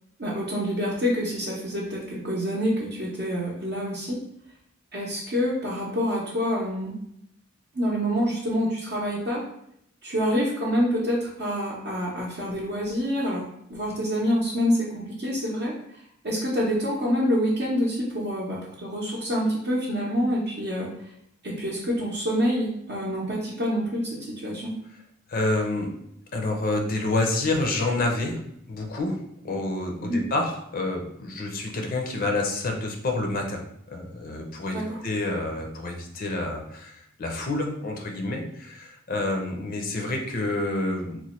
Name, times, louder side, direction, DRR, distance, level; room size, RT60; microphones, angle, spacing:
voice 1, 0.2-4.2 4.9-7.0 7.7-9.4 10.0-13.4 13.7-15.7 16.2-20.9 21.4-24.7 30.0-30.2 34.7-35.0, equal, 50° right, -6 dB, 0.6 m, -27 dB
voice 2, 25.3-25.9 26.3-28.4 28.7-41.2, left 2 dB, 45° left, 3 dB, 0.5 m, -28 dB
3.0 x 2.1 x 4.2 m, 0.74 s
head